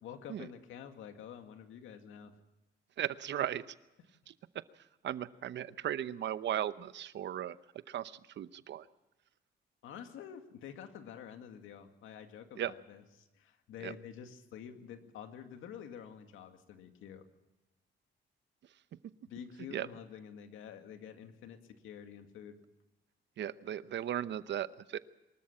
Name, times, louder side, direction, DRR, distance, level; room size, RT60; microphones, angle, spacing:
voice 1, 0.0-2.3 9.8-17.2 19.3-22.6, left 8 dB, 85° left, 7 dB, 2.2 m, -48 dB
voice 2, 3.0-3.6 4.3-4.4 5.0-7.6 7.9-8.8 12.6-12.7 13.8-13.9 19.7-19.9 23.4-25.0, right 11 dB, 65° right, 15 dB, 0.9 m, -36 dB
24.0 x 13.5 x 8.6 m, 1.0 s
cardioid pair, 90°, 20 cm